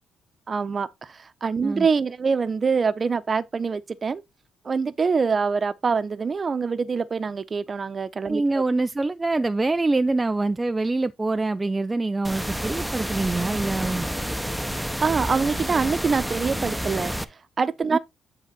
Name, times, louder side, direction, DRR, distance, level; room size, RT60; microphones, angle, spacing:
voice 1, 0.5-4.2 4.6-8.6 15.0-17.1 17.6-18.0, right 5 dB, 35° right, 0.9 m, -25 dB
voice 2, 8.3-14.1 17.9-18.0, right 2 dB, 20° right, 0.5 m, -25 dB
sound 1, 12.2-17.2, equal, ahead, 0.9 m, -29 dB
10.0 x 4.0 x 4.1 m
cardioid pair, 90°, 0 cm